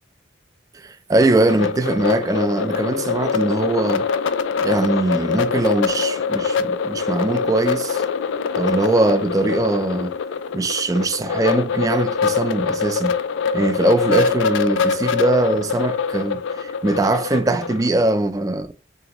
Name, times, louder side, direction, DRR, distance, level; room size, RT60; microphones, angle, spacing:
voice 1, 0.7-4.1 4.6-8.0 8.5-10.1 10.5-13.2 13.5-18.7, right 2 dB, 20° right, 0.3 m, -21 dB
sound 1, 1.2-17.9, left 5 dB, 80° left, 0.3 m, -24 dB
3.8 x 2.6 x 2.9 m
head